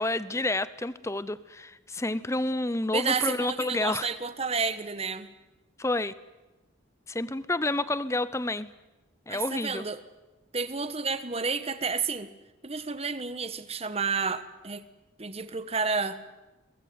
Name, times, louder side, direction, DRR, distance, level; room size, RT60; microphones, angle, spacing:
voice 1, 0.0-4.1 5.8-6.1 7.1-8.7 9.3-9.8, left 2 dB, 15° left, 16 dB, 0.8 m, -29 dB
voice 2, 2.9-5.3 9.3-10.0 10.5-12.3 12.6-14.8 15.2-16.2, right 5 dB, 30° right, 12 dB, 1.3 m, -30 dB
22.5 x 21.5 x 9.4 m, 1.1 s
head